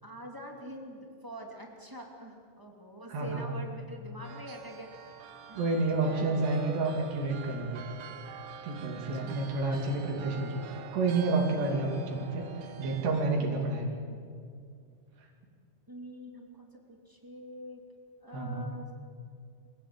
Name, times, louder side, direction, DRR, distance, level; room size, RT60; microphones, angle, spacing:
voice 1, 0.0-5.8 6.0-6.4 8.9-9.5 13.3-14.2 15.9-17.8 18.2-18.9, equal, 5° right, 0 dB, 1.8 m, -46 dB
voice 2, 3.1-3.6 5.6-7.8 8.6-13.9 18.3-18.7, right 3 dB, 75° right, 0 dB, 4.6 m, -30 dB
sound 1, 4.2-13.2, right 7 dB, 60° right, 2.3 m, -46 dB
26.0 x 16.0 x 8.8 m, 2.3 s
omnidirectional pair, 4.9 m